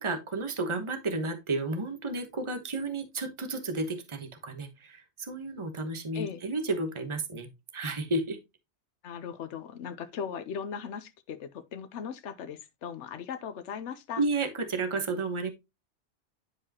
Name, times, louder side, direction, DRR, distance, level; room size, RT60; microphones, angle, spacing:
voice 1, 0.0-7.5 7.7-8.4 14.2-15.5, right 3 dB, 25° right, 1.2 m, -32 dB
voice 2, 9.0-14.2, left 7 dB, 85° left, 1.1 m, -38 dB
10.5 x 4.7 x 2.9 m
omnidirectional pair, 1.2 m